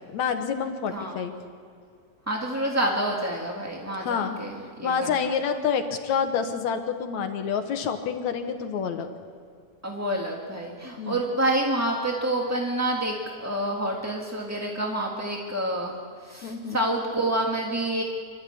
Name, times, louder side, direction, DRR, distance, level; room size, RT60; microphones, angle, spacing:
voice 1, 0.1-1.3 4.0-4.4 4.8-9.1 11.0-11.2 16.4-16.8, left 6 dB, 75° left, 6 dB, 2.5 m, -28 dB
voice 2, 2.3-5.3 9.8-18.0, right 1 dB, 10° right, -1 dB, 0.9 m, -28 dB
27.0 x 12.5 x 8.6 m, 2.3 s
omnidirectional pair, 3.4 m